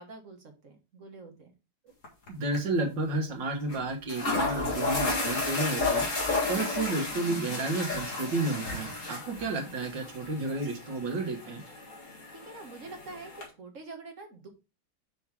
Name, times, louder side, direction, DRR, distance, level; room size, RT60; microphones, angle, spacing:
voice 1, 0.0-1.5 6.5-7.1 9.3-9.6 12.3-14.5, right 3 dB, 45° right, 4 dB, 1.6 m, -46 dB
sound 1, 2.0-2.3 2.5-2.6 3.7-3.8 4.1-13.5, left 3 dB, 45° left, 2.1 m, -33 dB
voice 2, 2.3-6.1 6.5-11.6, right 2 dB, 80° right, 2 dB, 2.1 m, -31 dB
6.2 x 4.5 x 3.4 m, 0.29 s
omnidirectional pair, 1.9 m